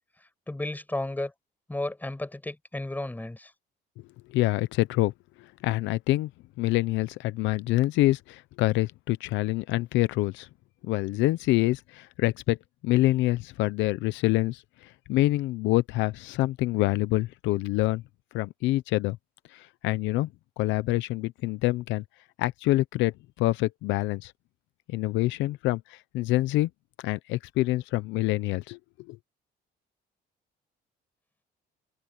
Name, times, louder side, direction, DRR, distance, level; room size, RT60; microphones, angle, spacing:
voice 1, 0.5-1.3 1.7-3.5, left 1 dB, 10° left, 6.0 m, -33 dB
voice 2, 4.3-5.1 5.4-6.3 6.6-10.5 10.8-12.6 12.8-18.0 18.3-19.2 19.5-20.3 20.6-22.0 22.4-24.3 24.9-26.7 27.0-28.8 29.1-29.2, left 18 dB, 90° left, 0.7 m, -26 dB
open air
cardioid pair, 110°, 19 cm